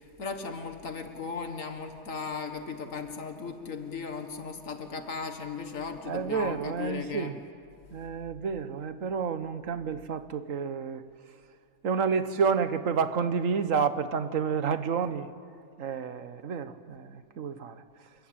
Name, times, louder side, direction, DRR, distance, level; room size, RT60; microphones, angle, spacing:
voice 1, 0.2-7.3, left 5 dB, 90° left, 6 dB, 2.0 m, -36 dB
voice 2, 6.1-7.4 7.9-11.0 11.8-15.3 15.8-17.8, right 6 dB, 85° right, 11 dB, 1.5 m, -30 dB
29.5 x 20.5 x 8.9 m, 2.5 s
omnidirectional pair, 1.3 m